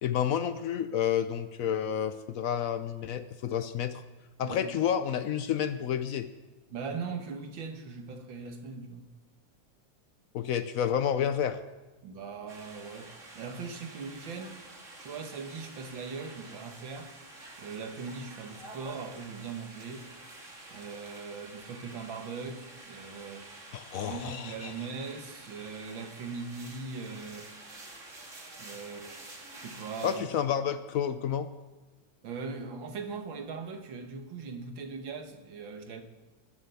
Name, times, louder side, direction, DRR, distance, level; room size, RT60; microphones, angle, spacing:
voice 1, 0.0-4.0 4.4-6.3 10.3-11.6 23.7-24.7 30.0-31.5, left 9 dB, 80° left, 0.7 m, -30 dB
voice 2, 4.4-4.8 6.7-9.1 12.0-14.6 15.0-17.1 17.6-20.1 20.7-23.5 24.0-27.7 28.6-29.4 29.6-30.3 32.2-36.0, right 4 dB, 70° right, 2.1 m, -40 dB
sound 1, 12.5-30.2, right 2 dB, 35° right, 2.5 m, -49 dB
20.0 x 7.7 x 7.0 m
omnidirectional pair, 2.3 m